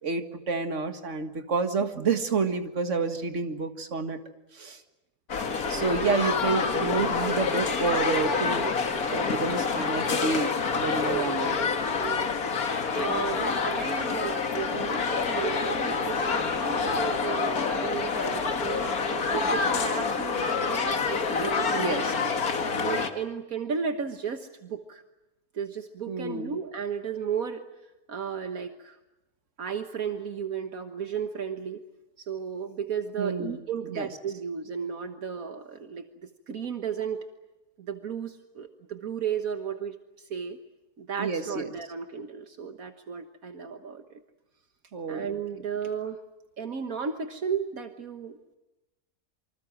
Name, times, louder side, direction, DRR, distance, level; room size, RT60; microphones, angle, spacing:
voice 1, 0.0-4.2 4.5-4.8 5.7-8.7 9.1-11.7 21.7-22.1 26.1-26.6 33.2-33.6 33.9-34.1 41.2-41.7 44.9-45.4, right 4 dB, 55° right, 7 dB, 2.1 m, -29 dB
sound 1, 5.3-23.1, left 5 dB, 75° left, 2.2 m, -27 dB
voice 2, 5.7-6.3 11.0-11.3 12.0-12.3 12.9-18.9 19.3-22.0 22.8-25.0 25.5-27.6 28.1-29.0 29.6-31.8 32.2-37.2 37.8-40.6 41.0-44.2 45.1-46.2 46.6-48.6, right 7 dB, 70° right, 7 dB, 1.8 m, -34 dB
27.5 x 25.0 x 7.6 m, 0.98 s
omnidirectional pair, 1.5 m